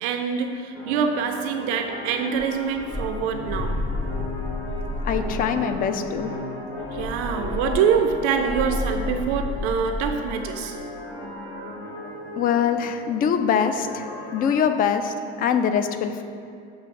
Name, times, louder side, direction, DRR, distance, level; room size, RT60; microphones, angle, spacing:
voice 1, 0.0-3.8 6.9-10.8 14.1-14.2, right 6 dB, 45° right, 6 dB, 0.5 m, -25 dB
sound 1, 0.7-14.7, left 1 dB, 70° left, 1.2 m, -36 dB
sound 2, 2.4-5.6 6.8-10.3, left 2 dB, 5° left, 0.8 m, -31 dB
voice 2, 5.0-6.3 12.4-16.2, left 7 dB, 25° left, 8 dB, 0.4 m, -23 dB
7.4 x 3.1 x 5.8 m, 2.3 s
figure-of-eight pair, 65°, 33 cm